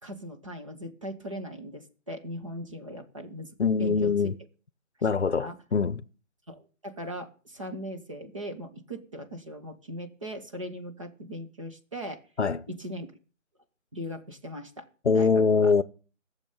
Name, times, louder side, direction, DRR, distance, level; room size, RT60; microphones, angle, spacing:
voice 1, 0.0-4.3 5.0-5.5 6.5-12.2 12.7-13.1 13.9-14.9 15.1-15.7, equal, 25° right, 1.5 m, -39 dB
voice 2, 3.6-4.3 5.0-6.0 12.4-12.6 15.0-15.8, left 5 dB, 55° left, 0.9 m, -23 dB
16.0 x 7.4 x 8.7 m
figure-of-eight pair, 175°, 39 cm